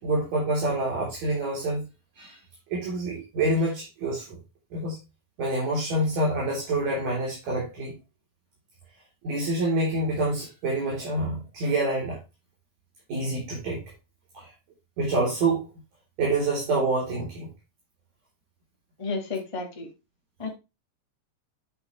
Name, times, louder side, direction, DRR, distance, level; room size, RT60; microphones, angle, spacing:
voice 1, 0.0-1.9 2.2-2.4 2.7-4.4 4.7-5.0 5.4-8.0 9.2-12.2 13.1-13.8 14.3-14.5 15.0-15.7 16.2-17.5, right 2 dB, 60° right, -4 dB, 4.5 m, -27 dB
voice 2, 19.0-19.9 20.4-20.5, left 3 dB, 30° left, 2 dB, 0.5 m, -31 dB
9.1 x 5.4 x 3.1 m, 0.26 s
omnidirectional pair, 3.7 m